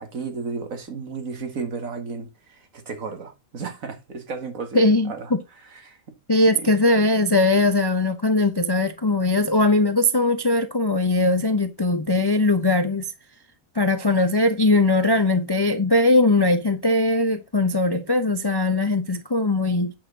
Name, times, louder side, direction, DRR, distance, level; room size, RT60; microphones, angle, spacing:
voice 1, 0.0-5.3 5.8-6.0 6.3-6.7, right 5 dB, 70° right, 2.0 m, -33 dB
voice 2, 4.7-5.4 6.3-13.1 13.7-19.9, left 2 dB, 30° left, 0.4 m, -20 dB
8.6 x 6.6 x 3.8 m
omnidirectional pair, 1.5 m